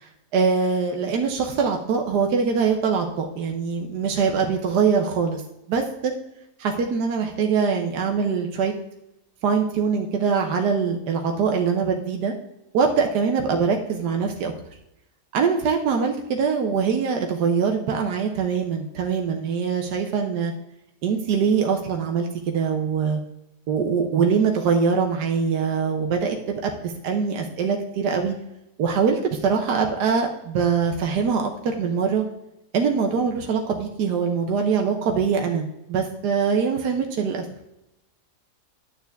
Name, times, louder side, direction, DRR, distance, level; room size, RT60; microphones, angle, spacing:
voice 1, 0.0-5.4 5.7-6.1 6.6-8.7 9.4-12.3 12.7-14.5 15.3-20.5 21.0-23.2 23.7-28.3 28.8-32.2 32.7-37.5, right 5 dB, 80° right, 3 dB, 1.4 m, -23 dB
10.5 x 6.7 x 3.5 m, 0.88 s
omnidirectional pair, 1.7 m